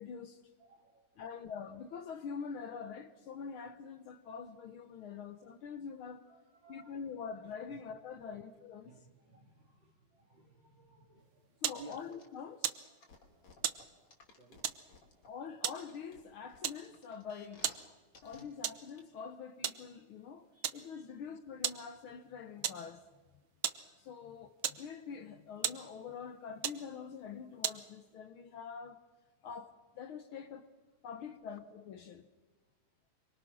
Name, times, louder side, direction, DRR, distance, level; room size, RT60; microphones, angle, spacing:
voice 1, 0.0-0.4 1.2-6.3 6.7-8.9 11.6-12.8 15.3-18.0 18.2-20.5 20.7-23.0 24.0-29.0 29.4-30.7 31.0-32.3, left 6 dB, 75° left, 1.2 m, -45 dB
voice 2, 0.6-1.4 3.4-3.5 5.1-5.2 6.3-7.0 7.7-7.8 8.8-12.0 12.9-13.5 14.4-14.7 20.5-21.1, right 3 dB, 40° right, 2.6 m, -58 dB
sound 1, 11.2-28.1, right 10 dB, 65° right, 1.2 m, -42 dB
sound 2, 11.7-12.3 12.8-15.3 15.7-17.8 18.1-18.4 18.9-19.0, left 4 dB, 50° left, 4.0 m, -58 dB
27.0 x 24.0 x 6.2 m
omnidirectional pair, 3.5 m